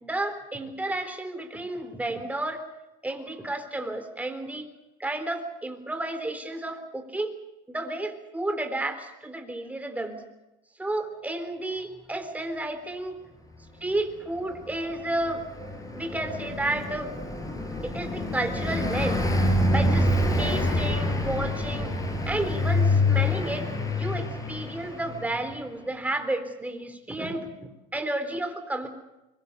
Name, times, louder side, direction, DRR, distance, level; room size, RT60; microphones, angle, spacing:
voice 1, 0.0-2.6 3.0-4.7 5.0-7.3 7.7-10.2 10.8-13.2 13.8-15.5 15.9-17.1 17.8-19.2 19.7-20.1 20.4-21.9 22.3-28.9, right 2 dB, 5° right, 7 dB, 3.7 m, -32 dB
Car passing by, 14.5-25.6, left 2 dB, 15° left, 5.3 m, -26 dB
24.5 x 23.0 x 6.9 m, 0.97 s
supercardioid pair, 120°, 21 cm